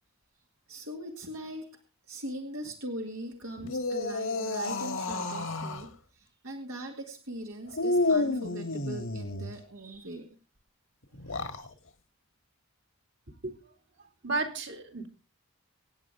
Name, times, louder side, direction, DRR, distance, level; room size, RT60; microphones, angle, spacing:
voice 1, 0.7-1.7 2.1-10.2 11.2-11.6, right 1 dB, 70° right, 1 dB, 2.2 m, -41 dB
sound 1, 3.6-5.9 7.7-9.5 11.1-11.7, left 2 dB, 70° left, 1.7 m, -30 dB
voice 2, 14.2-15.1, right 3 dB, 55° right, 3 dB, 2.5 m, -32 dB
25.0 x 9.1 x 3.6 m, 0.33 s
head